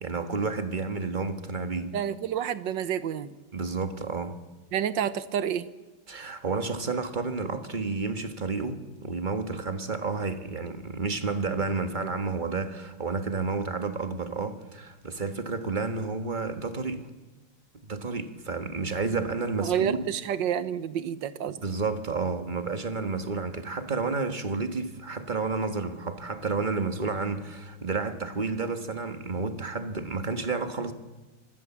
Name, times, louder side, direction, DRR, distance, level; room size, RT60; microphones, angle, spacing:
voice 1, 0.0-1.9 3.5-4.3 6.1-17.0 17.8-20.1 21.5-30.9, right 4 dB, 25° right, 1.6 m, -31 dB
voice 2, 1.9-3.3 4.7-5.7 19.6-21.6, right 9 dB, 80° right, 1.7 m, -29 dB
25.5 x 21.0 x 7.3 m
omnidirectional pair, 1.9 m